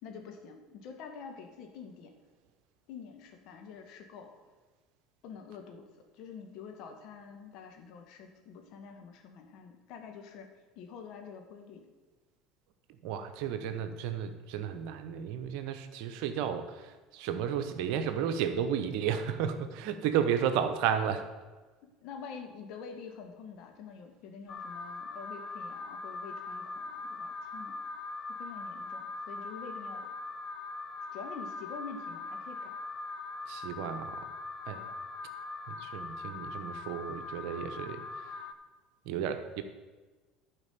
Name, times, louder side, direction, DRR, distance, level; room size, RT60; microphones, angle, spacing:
voice 1, 0.0-2.1 2.9-4.3 5.2-5.9 6.1-10.5 10.7-11.9 21.8-27.8 28.3-30.1 31.1-32.8 33.8-34.0 34.7-35.0, left 6 dB, 60° left, 4 dB, 1.5 m, -47 dB
voice 2, 13.0-21.3 33.5-34.2 34.7-34.9 35.7-38.0 39.1-39.6, right 8 dB, 65° right, 9 dB, 0.9 m, -33 dB
Alarm, 24.5-38.5, left 3 dB, 40° left, 0.8 m, -41 dB
11.0 x 4.9 x 6.8 m, 1.3 s
hypercardioid pair, 75°, 0 cm